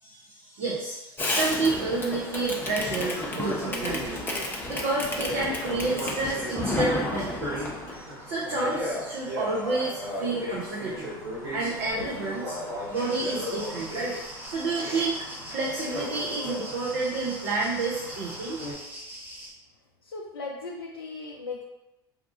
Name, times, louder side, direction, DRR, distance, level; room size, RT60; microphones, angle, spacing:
voice 1, 0.0-4.2 4.7-11.1 11.5-12.6 12.9-14.2 14.5-18.6, right 3 dB, 60° right, -5 dB, 0.7 m, -30 dB
Fireworks, 1.2-8.0, left 2 dB, 15° left, 0.7 m, -32 dB
sound 1, 2.6-18.7, equal, 75° right, 1.3 m, -37 dB
sound 2, 12.9-19.5, right 1 dB, 15° right, 1.2 m, -42 dB
voice 2, 20.0-21.6, left 3 dB, 90° left, -1 dB, 0.4 m, -37 dB
2.7 x 2.3 x 3.8 m, 0.96 s
hypercardioid pair, 75°, 12 cm